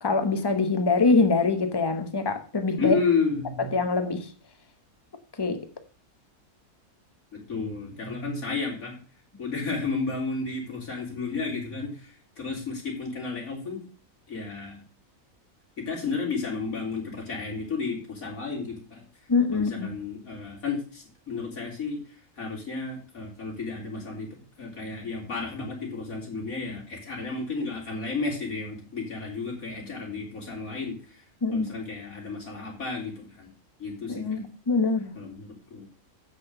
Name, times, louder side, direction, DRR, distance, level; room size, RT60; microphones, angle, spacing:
voice 1, 0.0-3.0 3.6-4.3 5.4-5.7 19.3-19.9 31.4-31.7 34.1-35.1, left 4 dB, 20° left, 1.0 m, -24 dB
voice 2, 2.8-3.7 7.3-9.0 9.4-13.8 14.3-14.8 15.8-19.1 19.5-22.0 22.4-31.2 31.5-33.5 33.8-34.4 35.2-35.9, left 4 dB, 75° left, 3.8 m, -32 dB
8.0 x 6.2 x 6.7 m
omnidirectional pair, 1.5 m